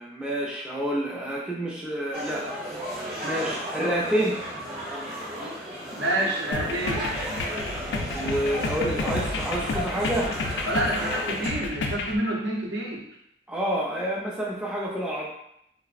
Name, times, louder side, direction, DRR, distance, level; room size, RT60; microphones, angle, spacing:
voice 1, 0.0-2.4 3.2-4.4 8.1-10.3 13.5-15.3, right 1 dB, 5° right, -5 dB, 0.3 m, -28 dB
sound 1, 2.1-11.5, equal, 35° right, 0.8 m, -34 dB
voice 2, 5.9-7.1 10.6-13.1, right 1 dB, 85° right, -3 dB, 0.7 m, -28 dB
sound 2, 6.5-12.2, left 3 dB, 90° left, 0.4 m, -31 dB
3.3 x 2.0 x 2.4 m, 0.75 s
head